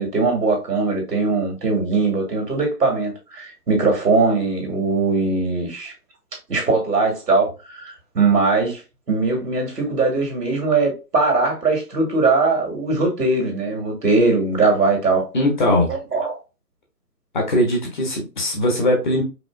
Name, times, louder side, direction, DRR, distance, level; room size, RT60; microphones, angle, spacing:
voice 1, 0.0-5.9 6.5-8.8 9.1-15.2 15.9-16.4, right 3 dB, 75° right, 2.2 m, -20 dB
voice 2, 15.3-15.9 17.3-19.2, left 1 dB, 30° left, 1.1 m, -20 dB
4.9 x 2.8 x 2.5 m
figure-of-eight pair, 150°, 48 cm